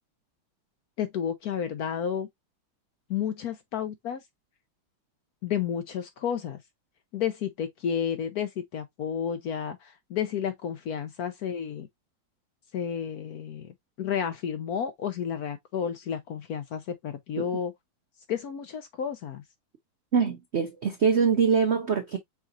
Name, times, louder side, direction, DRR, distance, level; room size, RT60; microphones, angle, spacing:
voice 1, 1.0-2.3 3.1-4.2 5.4-6.6 7.1-11.9 12.7-17.7 18.3-19.4, left 8 dB, 65° left, 0.9 m, -31 dB
voice 2, 20.1-22.2, right 6 dB, 70° right, 0.6 m, -24 dB
4.8 x 4.2 x 2.4 m
omnidirectional pair, 2.1 m